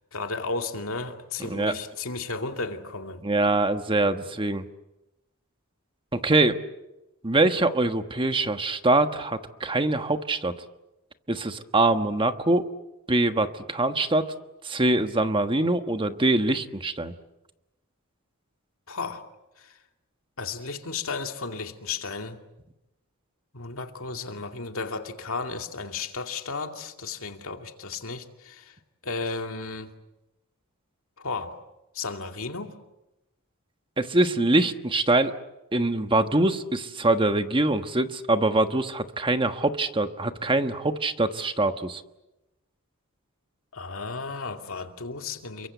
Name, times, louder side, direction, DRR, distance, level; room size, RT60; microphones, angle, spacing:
voice 1, 0.1-3.2 18.9-19.2 19.6-19.8 20.4-22.4 23.5-28.7 29.0-29.9 31.2-31.6 31.9-32.7 43.7-45.7, left 4 dB, 65° left, 2.5 m, -34 dB
voice 2, 3.2-4.7 6.1-6.6 7.2-10.5 11.3-12.7 13.1-14.3 14.6-17.1 34.0-35.3 35.7-42.0, right 2 dB, 25° right, 1.3 m, -24 dB
29.0 x 23.5 x 8.1 m
head